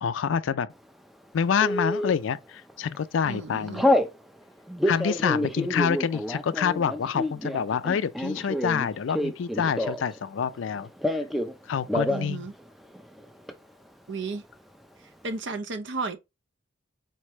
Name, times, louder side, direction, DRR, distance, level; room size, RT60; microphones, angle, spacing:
voice 1, 0.0-0.7 1.3-3.8 4.8-10.9 11.7-12.5, left 7 dB, 70° left, 0.4 m, -27 dB
Telephone, 1.6-2.1 2.7-3.0 3.2-4.1 4.7-10.2 10.4-11.5 11.8-12.3 12.6-12.7 12.9-13.5, left 1 dB, ahead, 0.4 m, -27 dB
voice 2, 3.3-3.9 12.1-12.5 14.1-14.4 15.2-16.2, right 3 dB, 60° right, 0.7 m, -33 dB
4.5 x 3.2 x 3.0 m
head